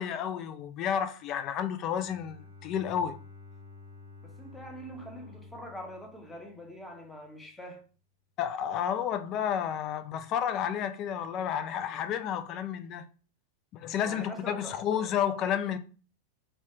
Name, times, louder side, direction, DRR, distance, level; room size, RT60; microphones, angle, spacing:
voice 1, 0.0-3.2 8.4-13.0 13.7-15.8, left 9 dB, 35° left, 0.3 m, -31 dB
Bowed string instrument, 1.9-7.1, left 3 dB, 80° right, 0.8 m, -51 dB
voice 2, 4.2-7.8 14.0-14.8, equal, 10° left, 0.7 m, -44 dB
3.1 x 2.2 x 2.8 m
figure-of-eight pair, 90°, 0 cm